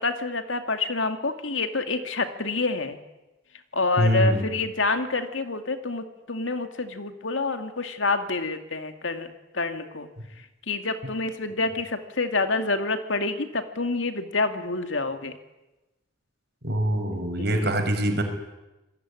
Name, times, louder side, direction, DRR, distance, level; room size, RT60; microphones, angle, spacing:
voice 1, 0.0-3.0 3.7-10.1 10.4-15.4 17.4-17.7, left 3 dB, 75° left, 7 dB, 2.4 m, -28 dB
voice 2, 4.0-4.4 16.6-18.2, equal, 55° right, 5 dB, 5.3 m, -23 dB
27.0 x 21.0 x 9.8 m, 1.0 s
head